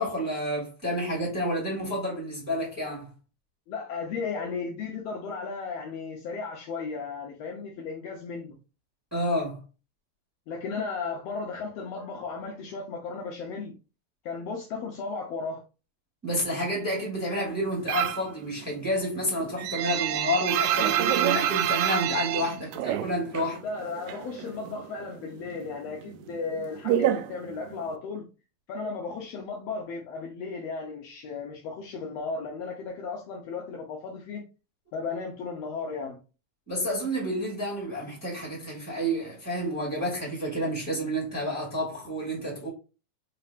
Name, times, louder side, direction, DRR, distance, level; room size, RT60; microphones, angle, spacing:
voice 1, 0.0-3.1 9.1-9.6 16.2-23.6 36.7-42.7, equal, 5° right, 1.7 m, -30 dB
voice 2, 3.7-8.6 10.5-13.7 14.2-15.6 23.4-28.2 28.7-34.4 34.9-36.2, left 4 dB, 75° left, 1.6 m, -35 dB
sound 1, 17.9-18.3 18.7-23.5 23.8-24.9 25.1-28.0, right 11 dB, 80° right, 1.8 m, -27 dB
4.9 x 3.3 x 2.4 m
omnidirectional pair, 3.4 m